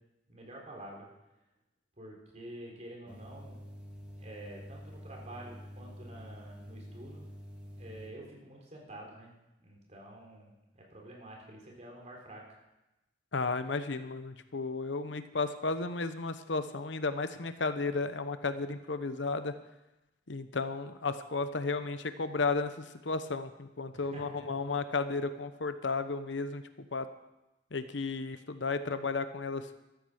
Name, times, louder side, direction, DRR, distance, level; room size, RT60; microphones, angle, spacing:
voice 1, 0.3-1.1 2.0-3.6 4.2-7.3 7.8-9.3 9.6-12.4 23.9-24.6, right 1 dB, 40° right, -1 dB, 3.7 m, -48 dB
sound 1, 3.1-8.1, equal, 5° right, 2.3 m, -47 dB
voice 2, 13.3-19.5 20.3-26.6 26.9-27.1 27.7-29.7, left 3 dB, 85° left, 11 dB, 0.9 m, -33 dB
14.0 x 13.0 x 5.0 m, 0.97 s
head